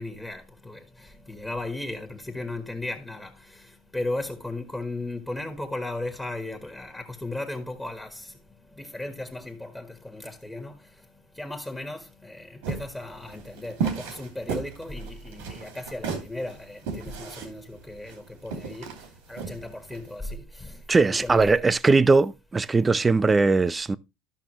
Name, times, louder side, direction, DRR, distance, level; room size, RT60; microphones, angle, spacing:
voice 1, 0.0-8.4 8.7-10.9 11.3-18.9 19.3-21.7, left 2 dB, 10° left, 1.5 m, -36 dB
sound 1, 12.6-20.1, right 6 dB, 85° right, 2.4 m, -34 dB
voice 2, 20.9-24.0, right 3 dB, 20° right, 0.5 m, -20 dB
13.0 x 5.7 x 3.0 m
supercardioid pair, 110°, 0 cm